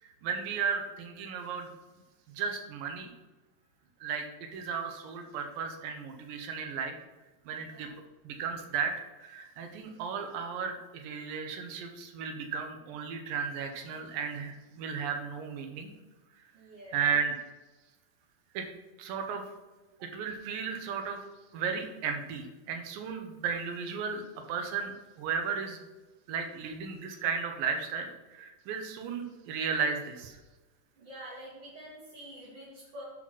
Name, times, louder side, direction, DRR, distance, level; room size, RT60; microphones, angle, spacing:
voice 1, 0.2-1.7 2.3-3.1 4.0-6.9 7.5-7.9 8.2-8.9 9.2-15.9 16.9-17.3 18.5-18.7 19.0-19.4 20.0-21.2 21.5-24.2 24.5-25.8 26.3-30.4, right 6 dB, 85° right, 4 dB, 2.7 m, -34 dB
voice 2, 16.5-17.1 31.0-33.0, equal, 45° right, -7 dB, 2.6 m, -47 dB
10.5 x 4.1 x 6.2 m, 1.2 s
omnidirectional pair, 3.9 m